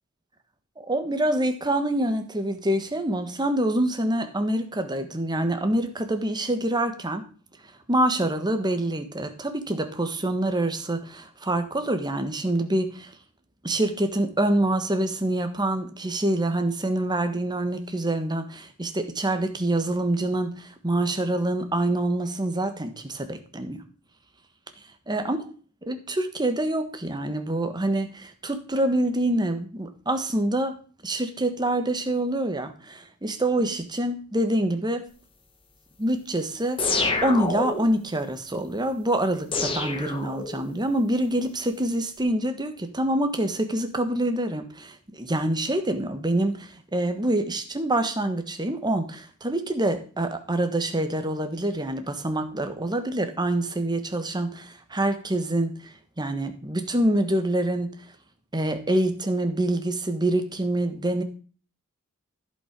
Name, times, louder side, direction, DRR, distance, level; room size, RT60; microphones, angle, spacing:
voice 1, 0.8-7.2 7.9-13.1 13.6-23.8 25.1-25.4 25.8-30.7 31.0-35.1 36.0-36.8 37.2-55.7 56.2-57.9 58.5-61.2, right 1 dB, 20° right, 8 dB, 1.3 m, -26 dB
sound 1, 36.8-38.0 39.5-40.8, left 3 dB, 25° left, 1.6 m, -27 dB
14.5 x 5.6 x 5.2 m, 0.39 s
head